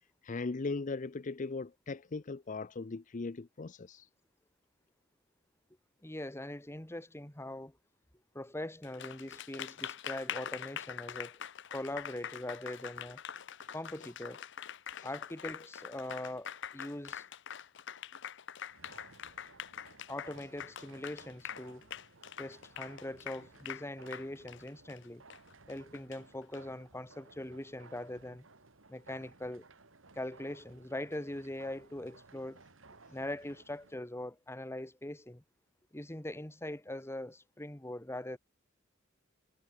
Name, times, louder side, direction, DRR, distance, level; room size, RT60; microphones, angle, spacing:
voice 1, 0.2-4.1 13.6-13.7 14.9-15.1, left 3 dB, 40° left, 0.6 m, -39 dB
voice 2, 6.0-7.8 8.3-11.4 11.7-13.2 13.7-14.4 15.0-17.2 20.1-21.9 22.4-25.2 25.7-28.4 28.9-29.7 30.1-32.6 33.1-35.4 35.9-38.4, left 1 dB, 15° left, 1.4 m, -42 dB
Applause, 8.8-26.6, left 9 dB, 65° left, 0.9 m, -44 dB
sound 1, 18.7-34.0, right 3 dB, 75° right, 2.5 m, -59 dB
head